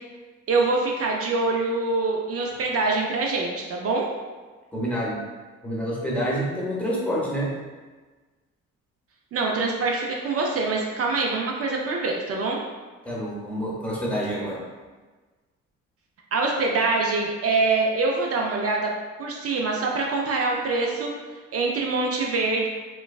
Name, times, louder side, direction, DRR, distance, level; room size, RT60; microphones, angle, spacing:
voice 1, 0.5-4.1 9.3-12.6 16.3-18.9 19.2-21.1 21.5-22.7, right 3 dB, 50° right, -1 dB, 0.4 m, -24 dB
voice 2, 4.7-5.1 5.6-7.5 13.0-14.6, equal, 5° left, -5 dB, 0.8 m, -27 dB
3.0 x 2.2 x 2.3 m, 1.3 s
cardioid pair, 90°, 30 cm